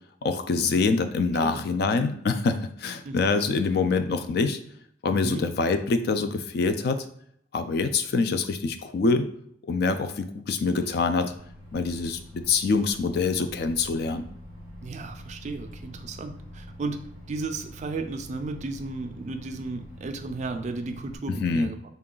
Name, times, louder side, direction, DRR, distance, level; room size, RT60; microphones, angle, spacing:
voice 1, 0.2-4.6 5.0-7.0 7.5-9.3 9.7-11.3 11.7-14.2 21.3-21.7, left 4 dB, 55° left, 9 dB, 0.3 m, -25 dB
voice 2, 5.1-5.5 14.8-17.0 17.3-21.8, right 3 dB, 40° right, 7 dB, 0.3 m, -34 dB
Microwave oven, 10.8-21.2, equal, 85° left, 1.4 m, -45 dB
3.6 x 2.3 x 3.7 m, 0.66 s
head